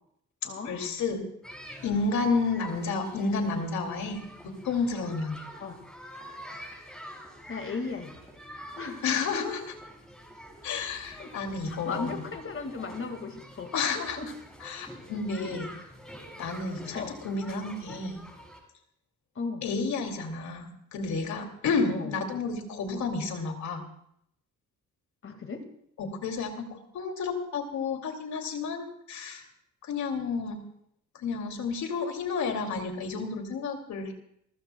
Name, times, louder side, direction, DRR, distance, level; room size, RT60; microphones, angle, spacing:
voice 1, 0.6-1.2 1.8-5.4 9.0-9.6 10.6-12.2 13.7-14.2 14.6-15.7 16.4-18.2 19.6-23.8 26.0-29.5 29.8-30.6 31.1-34.1, left 4 dB, 70° left, 4 dB, 2.5 m, -31 dB
sound 1, 1.4-18.6, equal, ahead, 5.2 m, -46 dB
voice 2, 7.5-8.2 8.7-9.0 9.3-9.4 11.2-11.3 11.7-14.3 16.9-17.2 19.4-19.6 21.9-22.1 25.2-25.6, left 4 dB, 45° left, 6 dB, 1.9 m, -36 dB
28.0 x 15.0 x 2.3 m, 0.71 s
cardioid pair, 90°, 30 cm